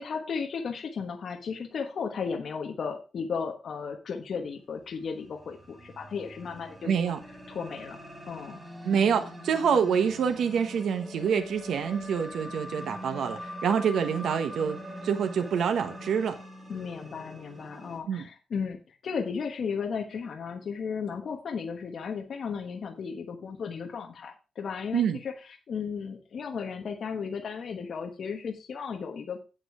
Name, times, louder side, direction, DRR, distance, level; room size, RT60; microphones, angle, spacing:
voice 1, 0.0-6.9 7.5-8.0 8.3-8.6 16.7-29.4, left 6 dB, 50° left, 3 dB, 1.3 m, -35 dB
sound 1, 4.9-18.0, equal, 15° right, 2.1 m, -43 dB
voice 2, 6.8-7.2 8.8-16.4 18.1-18.2 24.9-25.2, right 7 dB, 70° right, 7 dB, 1.0 m, -26 dB
8.4 x 7.8 x 4.8 m, 0.32 s
wide cardioid pair, 160°, 0 cm